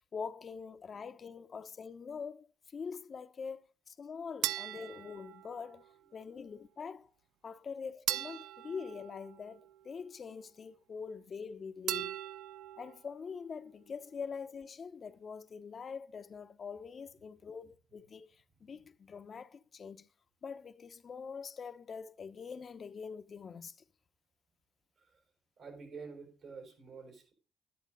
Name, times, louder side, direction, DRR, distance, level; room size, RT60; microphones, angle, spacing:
voice 1, 0.1-5.8 6.1-7.1 7.4-12.2 12.8-20.1 20.4-23.8, left 5 dB, 50° left, 0.8 m, -44 dB
sound 1, 4.4-5.9 8.1-9.9 11.9-13.0, right 12 dB, 90° right, 0.4 m, -39 dB
voice 2, 25.6-27.3, right 5 dB, 65° right, 5.4 m, -49 dB
11.5 x 10.5 x 3.9 m
cardioid pair, 80°, 0 cm